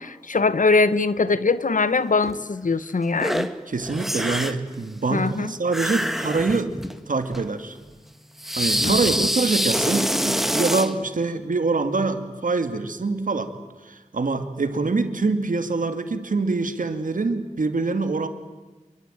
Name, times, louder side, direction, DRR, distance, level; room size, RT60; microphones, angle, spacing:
voice 1, 0.0-3.5 5.1-5.5 8.8-9.1, left 4 dB, 80° left, 15 dB, 1.2 m, -22 dB
sound 1, 2.2-2.4 3.2-3.5 3.8-4.7 5.7-7.0 7.3-7.4 8.4-10.9, equal, ahead, 2.0 m, -25 dB
voice 2, 3.7-6.7 7.1-7.8 8.5-13.5 13.8-18.3, right 3 dB, 80° right, 8 dB, 2.4 m, -25 dB
27.0 x 23.0 x 9.1 m, 1.2 s
wide cardioid pair, 55°, 13 cm